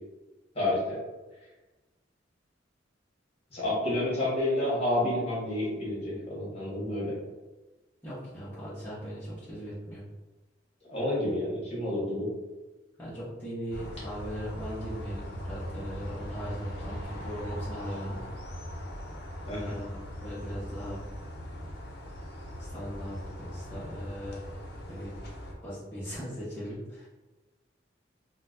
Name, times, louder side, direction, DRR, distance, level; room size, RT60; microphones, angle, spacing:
voice 1, 0.5-1.0 3.5-7.1 10.9-12.3 19.5-19.8, left 1 dB, 35° left, -7 dB, 1.2 m, -29 dB
voice 2, 8.0-10.0 13.0-18.2 19.4-21.0 22.7-24.4 24.9-25.2 25.6-27.1, equal, 10° left, -12 dB, 0.8 m, -39 dB
sound 1, 13.7-25.5, equal, 60° left, 0.7 m, -40 dB
3.9 x 2.2 x 2.5 m, 1.2 s
head